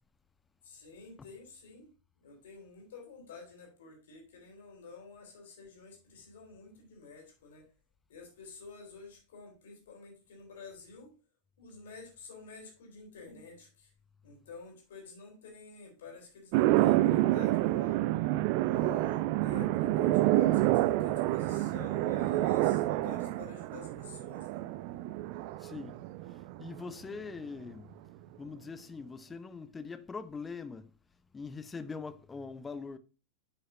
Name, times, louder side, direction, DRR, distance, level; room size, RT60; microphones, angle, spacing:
voice 1, 0.6-1.9 2.2-7.6 8.1-11.1 11.6-13.9 14.2-18.0 18.6-24.6, left 4 dB, 60° left, 3.9 m, -50 dB
sound 1, 16.5-26.9, right 16 dB, 45° right, 0.4 m, -28 dB
voice 2, 25.6-26.0 26.6-27.9 28.4-30.9 31.3-33.0, left 4 dB, 15° left, 0.7 m, -42 dB
10.5 x 6.5 x 2.7 m
figure-of-eight pair, 90°, 0 cm